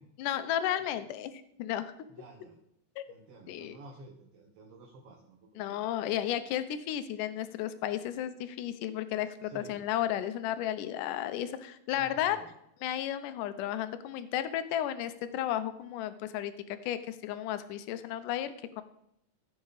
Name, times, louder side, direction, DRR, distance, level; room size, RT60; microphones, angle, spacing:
voice 1, 0.2-1.9 3.0-3.1 3.5-3.7 5.6-12.4 12.8-18.8, left 11 dB, 80° left, 12 dB, 2.2 m, -33 dB
voice 2, 2.1-2.6 3.1-5.9 9.4-9.8 11.9-12.5, right 3 dB, 60° right, -1 dB, 1.9 m, -51 dB
15.5 x 5.9 x 4.0 m, 0.77 s
omnidirectional pair, 3.8 m